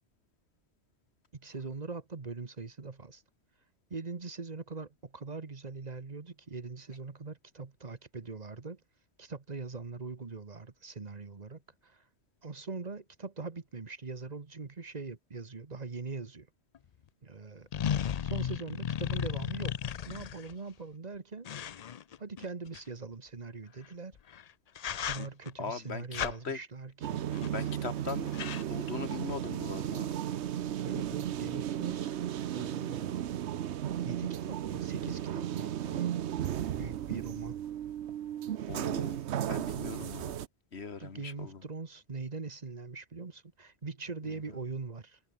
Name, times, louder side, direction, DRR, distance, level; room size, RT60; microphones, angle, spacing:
voice 1, 1.3-3.2 3.9-8.8 9.2-12.0 12.4-16.5 17.2-17.7 18.2-21.5 22.2-24.2 25.0-27.3 30.8-32.1 32.5-33.1 34.0-36.1 36.7-37.6 41.0-45.2, right 4 dB, 40° right, 1.4 m, -42 dB
sound 1, 16.7-16.8 17.7-20.5 21.5-22.8 24.2-24.4 24.8-25.5 26.1-26.3 27.3-27.7 28.0-28.1 28.3-28.6, left 8 dB, 50° left, 0.5 m, -35 dB
voice 2, 25.6-26.6 27.5-28.3 28.7-30.1 38.7-39.2 39.5-40.4 40.7-41.6, left 5 dB, 65° left, 2.1 m, -39 dB
sound 2, 27.0-40.5, right 10 dB, 75° right, 1.0 m, -35 dB
omnidirectional pair, 1.2 m